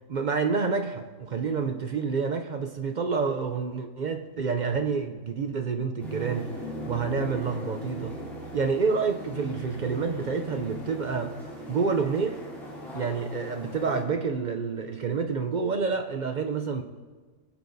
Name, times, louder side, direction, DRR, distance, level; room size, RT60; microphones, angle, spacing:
voice 1, 0.1-6.5 6.9-8.2 8.5-11.4 11.7-12.4 12.9-16.8, right 5 dB, 55° right, 6 dB, 0.5 m, -28 dB
sound 1, 6.0-14.0, right 1 dB, ahead, 3.1 m, -39 dB
19.5 x 8.5 x 2.7 m, 1.4 s
omnidirectional pair, 1.3 m